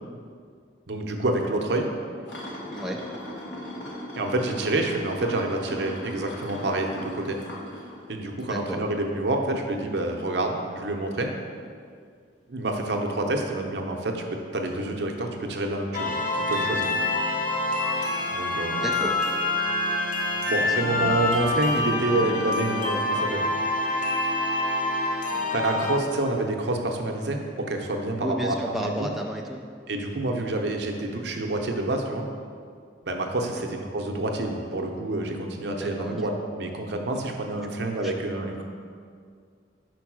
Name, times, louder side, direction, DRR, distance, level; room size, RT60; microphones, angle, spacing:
voice 1, 0.9-1.9 4.2-7.4 8.1-11.3 12.5-14.2 14.5-16.9 18.3-18.8 20.5-23.5 25.5-29.1 29.9-32.3 33.0-38.6, right 2 dB, 65° right, 2 dB, 0.7 m, -28 dB
sound 1, 2.3-8.8 9.2-9.4 12.8-12.9 14.6-14.7, left 1 dB, 70° left, 1.4 m, -39 dB
voice 2, 8.4-8.8 18.8-19.1 20.7-21.1 28.2-29.6 33.5-33.7 35.8-36.3 38.0-38.1, right 1 dB, ahead, 0 dB, 0.4 m, -33 dB
sound 2, 15.9-26.0, left 2 dB, 45° left, 0.8 m, -26 dB
5.2 x 4.6 x 6.1 m, 2.2 s
head